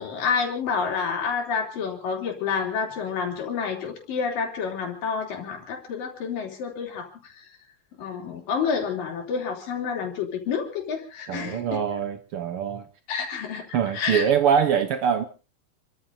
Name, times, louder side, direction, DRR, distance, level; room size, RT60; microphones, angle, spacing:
voice 1, 0.0-7.5 8.0-11.8 13.1-14.3, left 6 dB, 75° left, 5.0 m, -29 dB
voice 2, 11.3-12.8 13.7-15.2, right 8 dB, 90° right, 1.2 m, -23 dB
29.5 x 14.0 x 2.8 m
omnidirectional pair, 4.0 m